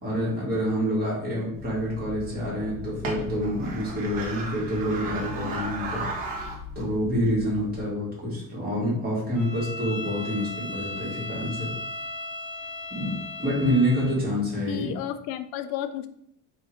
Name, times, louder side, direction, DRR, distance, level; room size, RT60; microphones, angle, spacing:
voice 1, 0.0-6.0 6.8-11.7 12.9-14.9, equal, 25° right, -5 dB, 1.8 m, -27 dB
sound 1, 1.5-7.8, right 1 dB, 70° right, 1.1 m, -36 dB
Bowed string instrument, 9.3-14.2, left 2 dB, 50° left, 1.2 m, -36 dB
voice 2, 14.7-16.1, left 11 dB, 80° left, 11 dB, 0.5 m, -32 dB
3.7 x 2.8 x 4.5 m, 0.71 s
cardioid pair, 175°, 35 cm